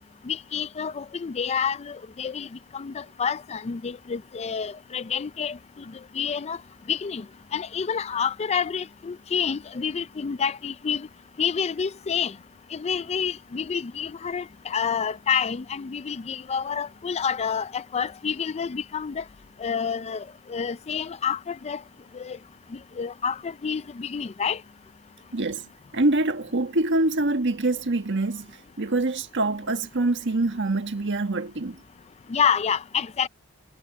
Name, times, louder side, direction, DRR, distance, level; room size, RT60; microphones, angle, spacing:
voice 1, 0.2-2.5 2.7-5.6 6.1-6.6 6.9-7.2 7.5-11.1 11.4-12.3 12.7-19.2 19.6-21.8 22.1-22.4 22.7-24.6 32.3-33.3, left 7 dB, 30° left, 0.4 m, -28 dB
voice 2, 25.3-25.7 25.9-31.8, right 2 dB, 60° right, 1.5 m, -25 dB
head